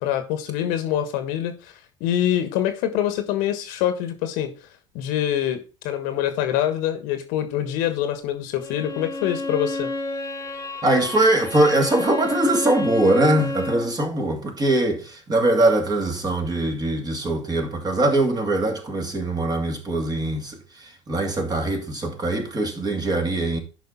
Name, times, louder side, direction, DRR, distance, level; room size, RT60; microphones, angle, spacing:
voice 1, 0.0-1.7 2.0-4.5 4.9-9.9, left 11 dB, 55° left, 1.4 m, -25 dB
Bowed string instrument, 8.6-14.0, left 3 dB, 15° left, 1.8 m, -30 dB
voice 2, 10.8-23.6, right 2 dB, 25° right, 2.5 m, -22 dB
11.0 x 5.2 x 3.9 m
figure-of-eight pair, 65°, 16 cm